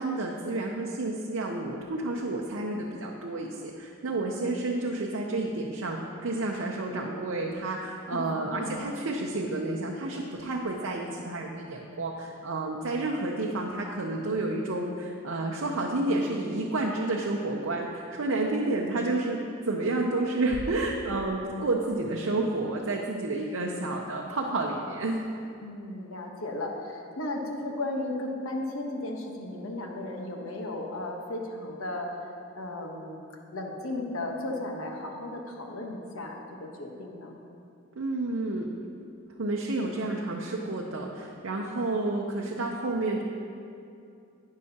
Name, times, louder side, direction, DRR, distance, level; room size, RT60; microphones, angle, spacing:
voice 1, 0.0-25.2 37.9-38.7 39.4-43.2, right 2 dB, 75° right, -1 dB, 0.7 m, -30 dB
voice 2, 8.1-8.8 25.6-32.2 32.5-33.2 33.5-37.4, left 2 dB, 80° left, 1 dB, 1.1 m, -35 dB
11.0 x 9.6 x 2.9 m, 2.6 s
head